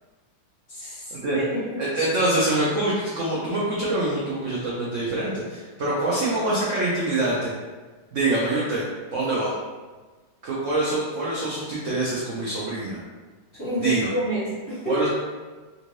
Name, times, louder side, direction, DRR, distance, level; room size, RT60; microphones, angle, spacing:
voice 1, 0.7-1.8 13.5-14.9, right 1 dB, 35° left, -11 dB, 1.2 m, -29 dB
voice 2, 1.8-7.5 8.1-9.5 10.4-13.0 13.8-14.1 14.8-15.1, right 2 dB, 80° right, -7 dB, 0.7 m, -25 dB
3.4 x 2.6 x 3.1 m, 1.3 s
omnidirectional pair, 2.1 m